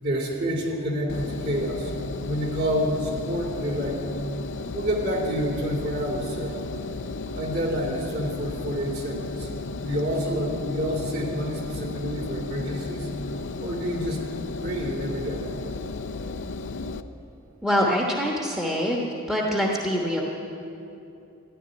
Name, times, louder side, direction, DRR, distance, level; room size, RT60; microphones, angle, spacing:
voice 1, 0.0-1.9 2.2-4.0 4.7-6.6 7.3-9.5 9.7-13.1 13.6-14.2 14.6-15.6, equal, 50° right, -1 dB, 2.7 m, -28 dB
Engine, 1.1-17.0, left 3 dB, 55° left, 0.5 m, -34 dB
voice 2, 17.6-19.0 19.3-20.2, equal, ahead, -2 dB, 1.2 m, -24 dB
13.5 x 11.0 x 9.0 m, 2.7 s
head